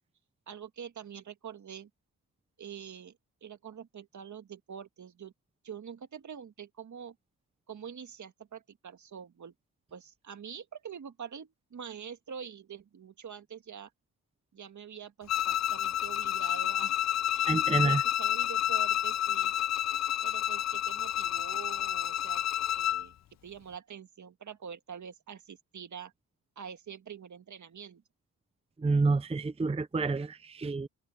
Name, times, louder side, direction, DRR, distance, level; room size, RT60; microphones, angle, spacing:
voice 1, 0.5-1.9 2.6-3.2 3.4-5.3 5.6-7.2 7.7-9.5 9.9-13.9 14.5-17.0 17.3-19.5 20.2-22.4 22.8-23.1 23.4-26.1 26.6-28.0, right 7 dB, 50° right, 1.8 m, -45 dB
Bowed string instrument, 15.3-23.1, left 12 dB, 50° left, 0.5 m, -29 dB
voice 2, 17.5-18.0 28.8-30.9, right 3 dB, 15° right, 0.6 m, -28 dB
cardioid pair, 90°, 37 cm